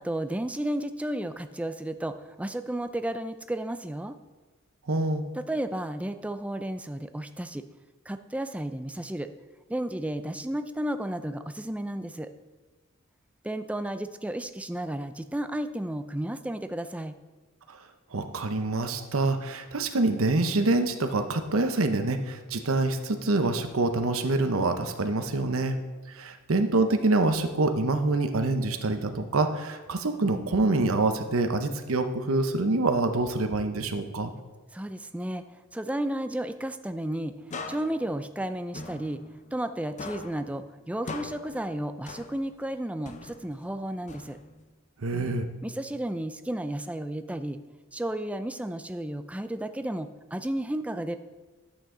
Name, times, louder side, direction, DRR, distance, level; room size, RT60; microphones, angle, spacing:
voice 1, 0.0-4.2 5.4-7.6 8.1-9.3 9.7-12.3 13.4-17.2 34.7-35.4 35.7-37.3 37.7-39.2 39.5-44.4 45.6-47.6 47.9-51.2, right 1 dB, 5° right, 9 dB, 0.4 m, -33 dB
voice 2, 4.9-5.2 17.7-17.8 18.1-25.8 26.1-34.3 45.0-45.4, right 2 dB, 85° right, 7 dB, 0.9 m, -26 dB
sound 1, 37.5-39.7 40.0-42.7 43.1-44.7, left 3 dB, 35° left, 0.6 m, -42 dB
11.0 x 8.5 x 3.8 m, 1.3 s
head